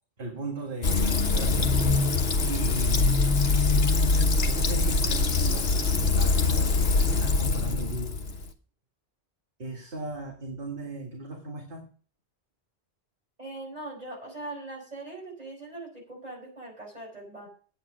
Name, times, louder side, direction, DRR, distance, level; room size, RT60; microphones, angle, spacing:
voice 1, 0.2-3.2 4.5-5.7 6.1-8.2 9.6-11.9, right 2 dB, 55° right, 1 dB, 1.9 m, -37 dB
Fill (with liquid), 0.8-8.5, left 3 dB, 65° left, 1.3 m, -23 dB
voice 2, 13.4-17.5, right 2 dB, 35° right, -1 dB, 5.0 m, -41 dB
9.3 x 9.1 x 6.1 m, 0.42 s
omnidirectional pair, 1.1 m